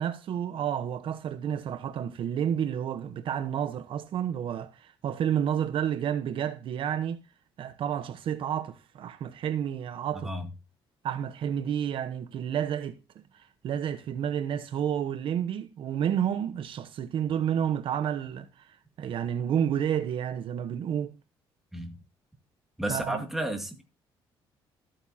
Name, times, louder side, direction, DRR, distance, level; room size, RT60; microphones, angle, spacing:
voice 1, 0.0-7.2 7.6-10.3 11.0-21.1 22.9-23.2, right 9 dB, 60° right, 0.9 m, -30 dB
voice 2, 22.8-23.8, right 1 dB, 5° right, 2.3 m, -32 dB
14.0 x 9.0 x 2.8 m
cardioid pair, 125°, 10 cm